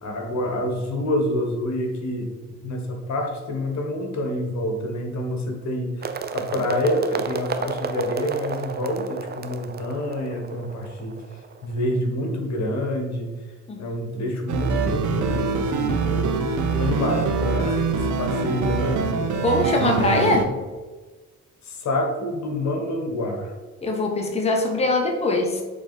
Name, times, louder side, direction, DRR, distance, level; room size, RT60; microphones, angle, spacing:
voice 1, 0.0-2.3 2.6-11.1 11.6-13.3 13.8-16.4 16.8-19.1 19.8-20.3 21.6-23.5, left 1 dB, 65° left, 2 dB, 1.5 m, -27 dB
sound 1, 6.0-11.9, right 5 dB, 35° right, 0.6 m, -32 dB
sound 2, 14.5-20.5, right 5 dB, 75° right, 0.8 m, -24 dB
voice 2, 19.4-20.5 23.8-25.6, left 2 dB, 20° left, 1 dB, 1.2 m, -22 dB
7.5 x 3.7 x 4.2 m, 1.3 s
cardioid pair, 90°, 30 cm